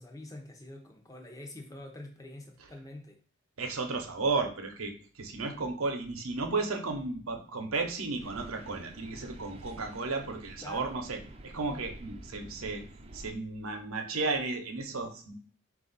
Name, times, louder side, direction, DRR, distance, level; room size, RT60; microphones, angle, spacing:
voice 1, 0.0-3.2 10.6-11.0, left 1 dB, 15° left, 2 dB, 0.6 m, -46 dB
voice 2, 3.6-11.2 11.4-12.8 13.1-15.3, right 3 dB, 85° right, 4 dB, 0.8 m, -33 dB
sound 1, 8.2-13.3, right 1 dB, 30° right, 0.4 m, -48 dB
4.2 x 2.4 x 3.9 m, 0.42 s
head